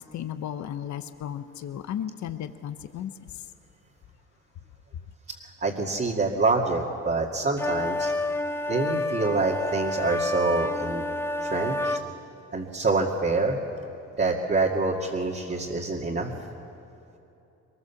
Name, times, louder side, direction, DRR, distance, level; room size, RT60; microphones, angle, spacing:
voice 1, 0.0-3.3, left 10 dB, 70° left, 10 dB, 0.9 m, -35 dB
voice 2, 5.6-8.1 8.7-11.0 11.4-12.0 12.5-13.6 14.2-16.3, right 3 dB, 35° right, -3 dB, 2.1 m, -26 dB
sound 1, 7.6-12.0, left 1 dB, 10° left, 0.7 m, -29 dB
22.5 x 20.5 x 7.1 m, 2.9 s
cardioid pair, 90°, 30 cm